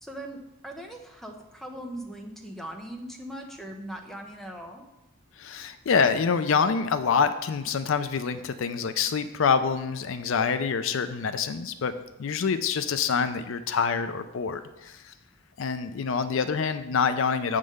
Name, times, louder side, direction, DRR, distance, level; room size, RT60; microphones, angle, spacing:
voice 1, 0.0-4.8, right 1 dB, ahead, 2 dB, 0.7 m, -40 dB
voice 2, 5.4-11.9 12.2-15.1 15.6-17.6, left 6 dB, 65° left, 11 dB, 0.4 m, -26 dB
7.9 x 3.7 x 6.3 m, 0.96 s
head